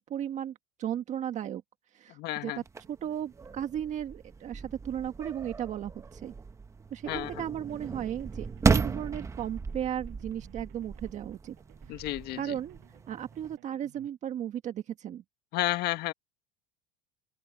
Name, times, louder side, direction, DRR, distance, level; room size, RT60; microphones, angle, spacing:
voice 1, 0.1-0.5 0.8-1.6 1.9-2.5 2.9-6.3 6.9-11.5 12.3-12.8 13.1-15.2, right 10 dB, 35° right, 1.6 m, -35 dB
voice 2, 2.1-2.6 7.1-7.4 11.9-12.6 15.5-16.1, left 17 dB, 55° left, 1.5 m, -32 dB
sound 1, 2.6-13.6, right 4 dB, 15° right, 0.9 m, -35 dB
sound 2, 7.5-14.1, right 25 dB, 65° right, 6.8 m, -58 dB
open air
supercardioid pair, 135°, 20 cm